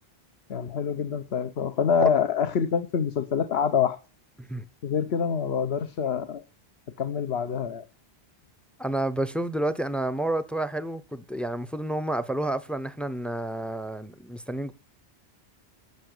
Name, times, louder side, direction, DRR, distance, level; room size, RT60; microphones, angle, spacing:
voice 1, 0.5-4.0 4.8-6.4 7.0-7.8, left 7 dB, 80° left, 1.1 m, -26 dB
voice 2, 8.8-14.7, right 1 dB, ahead, 0.5 m, -30 dB
12.0 x 7.0 x 6.6 m
omnidirectional pair, 1.1 m